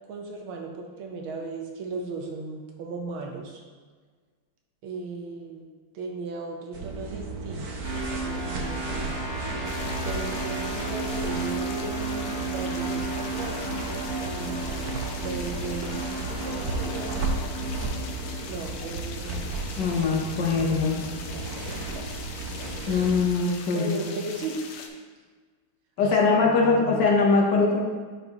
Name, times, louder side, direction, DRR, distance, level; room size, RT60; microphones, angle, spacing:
voice 1, 0.1-3.6 4.8-5.7 5.9-7.7 8.2-9.2 10.0-14.9 15.2-17.9 18.5-20.3 21.0-22.2 22.6-24.6 26.0-27.1, right 3 dB, 75° right, 1 dB, 1.6 m, -37 dB
sound 1, 6.7-23.3, right 2 dB, 60° right, 1.1 m, -34 dB
sound 2, 7.8-18.4, right 3 dB, 15° right, 1.4 m, -34 dB
sound 3, 9.7-24.9, left 5 dB, 80° left, 1.5 m, -42 dB
voice 2, 19.8-21.0 22.9-24.0 26.0-27.8, left 4 dB, 60° left, -1 dB, 1.4 m, -22 dB
10.5 x 4.5 x 2.9 m, 1.5 s
omnidirectional pair, 2.4 m